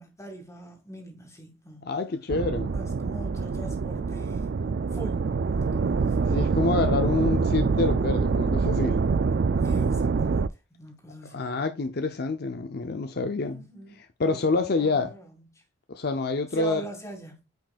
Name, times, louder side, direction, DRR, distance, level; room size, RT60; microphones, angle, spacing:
voice 1, 0.0-1.9 2.7-4.6 4.9-6.3 9.6-11.4 13.4-15.3 15.5-15.6 16.5-17.5, right 1 dB, 15° left, 2.1 m, -42 dB
voice 2, 1.8-2.7 6.3-9.0 11.3-13.7 14.2-15.1 15.9-16.8, left 3 dB, 55° left, 0.6 m, -27 dB
sound 1, 2.3-10.5, right 4 dB, 60° right, 0.4 m, -25 dB
9.1 x 5.2 x 2.4 m
head